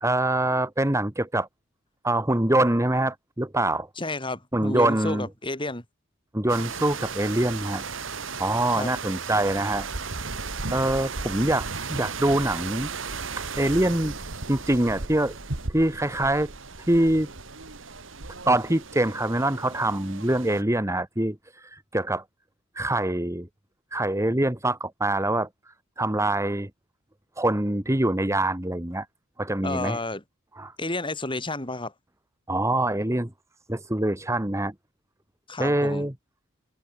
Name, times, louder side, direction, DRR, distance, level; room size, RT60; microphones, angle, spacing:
voice 1, 0.0-1.5 2.0-3.9 4.5-5.3 6.3-7.8 8.4-9.9 10.7-12.9 13.4-14.1 14.5-15.3 15.7-16.5 16.9-17.3 18.4-21.3 21.7-22.2 22.7-23.5 23.9-25.5 26.0-26.7 27.4-29.0 29.4-30.0 30.6-30.7 32.5-33.3 33.7-34.7 35.6-36.1, right 1 dB, 15° right, 1.6 m, -24 dB
voice 2, 4.0-5.8 8.7-8.9 29.6-30.2 30.8-31.9 35.5-36.1, left 2 dB, 25° left, 5.9 m, -31 dB
sound 1, 6.5-20.6, right 4 dB, 85° right, 2.5 m, -35 dB
head